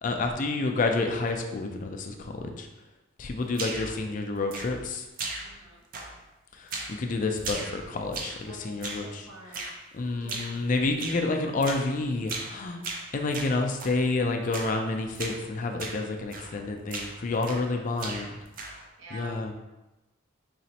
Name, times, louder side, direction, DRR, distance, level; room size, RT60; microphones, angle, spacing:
voice 1, 0.0-2.7 3.2-5.1 6.5-9.3 9.9-12.8 13.1-18.4 19.1-19.5, left 3 dB, 40° left, 4 dB, 0.4 m, -29 dB
sound 1, 3.5-4.0 4.5-4.9 5.2-5.7 5.9-6.3 6.7-7.0 7.4-8.4 8.8-9.1 9.5-9.8 10.3-10.6 11.0-11.2 11.6-11.9 12.3-12.5 12.8-14.0 14.5-14.8 15.1-15.4 15.8-16.0 16.3-16.6 16.9-17.7 18.0-18.9, right 3 dB, 45° right, 0.5 m, -37 dB
voice 2, 5.4-5.8 8.5-9.7 10.2-10.4 10.8-11.5 17.3-18.3 19.0-19.4, right 1 dB, 85° right, -4 dB, 1.0 m, -48 dB
4.1 x 3.0 x 2.8 m, 1.0 s
head